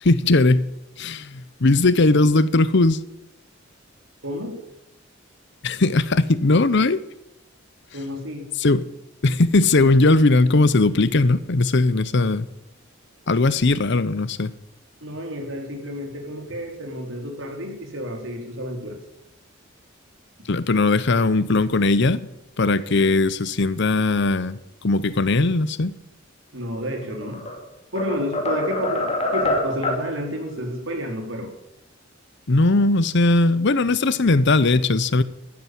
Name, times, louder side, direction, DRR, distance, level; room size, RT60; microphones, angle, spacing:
voice 1, 0.0-0.7 1.0-3.0 5.6-7.0 8.6-8.8 9.2-12.5 13.3-14.5 20.5-22.2 22.6-26.0 32.5-35.2, left 2 dB, 60° left, 0.8 m, -19 dB
voice 2, 4.2-4.6 7.9-8.5 15.0-19.0 26.5-27.5 27.9-31.5, equal, 70° right, 4.0 m, -30 dB
sound 1, 27.1-27.6 28.0-30.1, left 1 dB, 30° left, 2.7 m, -25 dB
12.5 x 10.5 x 9.4 m
head